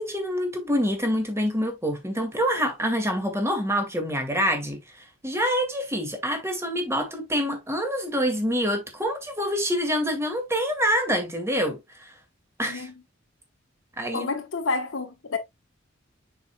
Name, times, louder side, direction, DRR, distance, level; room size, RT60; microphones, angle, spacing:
voice 1, 0.0-12.1 12.6-12.9 14.0-14.3, equal, 15° right, 1.9 m, -26 dB
voice 2, 14.1-15.4, left 3 dB, 80° left, 1.1 m, -29 dB
6.8 x 6.3 x 2.2 m
head